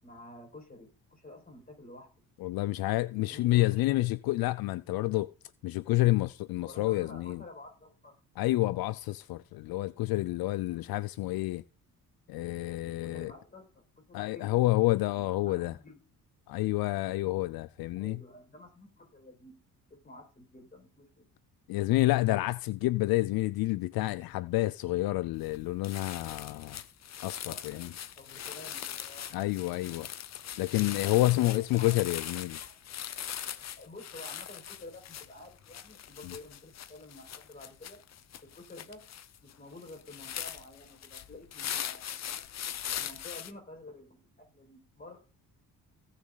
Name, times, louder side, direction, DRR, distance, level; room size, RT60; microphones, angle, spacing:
voice 1, 0.0-2.1 3.2-4.1 6.7-8.2 13.0-14.5 15.1-16.0 17.9-19.6 19.9-21.1 27.5-27.8 28.2-29.4 31.0-31.9 32.6-32.7 33.8-38.0 38.4-39.0 39.4-42.4 42.9-44.3 44.5-45.2, left 2 dB, 25° left, 5.2 m, -50 dB
voice 2, 2.4-5.3 5.6-7.4 8.4-11.6 12.3-13.3 14.1-15.7 16.5-18.2 21.7-26.8 27.2-27.9 29.3-30.1 30.6-32.6 36.2-36.3, left 18 dB, 75° left, 0.5 m, -29 dB
sound 1, 25.4-25.6 25.8-43.5, left 10 dB, 45° left, 0.8 m, -41 dB
16.5 x 6.4 x 4.0 m
cardioid pair, 115°, 36 cm